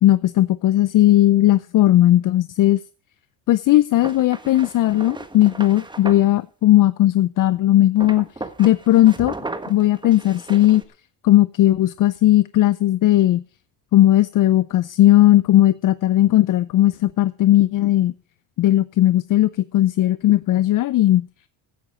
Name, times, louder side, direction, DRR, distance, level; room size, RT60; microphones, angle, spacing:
voice 1, 0.0-2.8 3.5-8.3 8.6-9.3 9.7-10.8 11.2-13.4 13.9-18.1 18.6-21.3, left 14 dB, 45° left, 16 dB, 0.6 m, -16 dB
sound 1, 4.0-6.3 8.0-10.8, right 2 dB, 10° right, 1.4 m, -35 dB
16.0 x 9.2 x 5.1 m, 0.36 s
cardioid pair, 105°, 43 cm